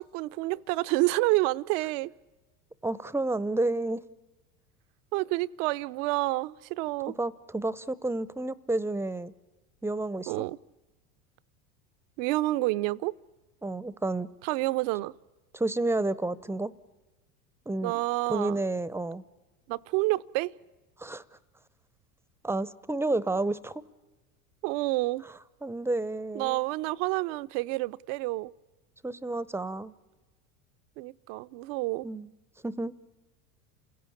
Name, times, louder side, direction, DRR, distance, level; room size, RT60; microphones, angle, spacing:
voice 1, 0.0-2.1 5.1-7.1 10.3-10.6 12.2-13.1 14.4-15.1 17.8-18.6 19.7-20.5 24.6-25.2 26.3-28.5 31.0-32.1, right 20 dB, 55° right, 0.7 m, -29 dB
voice 2, 2.8-4.0 7.2-9.3 9.8-10.4 13.6-14.3 15.5-16.7 17.7-17.9 18.3-19.2 21.0-21.2 22.4-23.7 25.6-26.6 29.0-29.9 32.0-32.3 32.6-32.9, right 2 dB, 5° right, 0.7 m, -30 dB
29.0 x 16.5 x 8.5 m
hypercardioid pair, 90°, 44 cm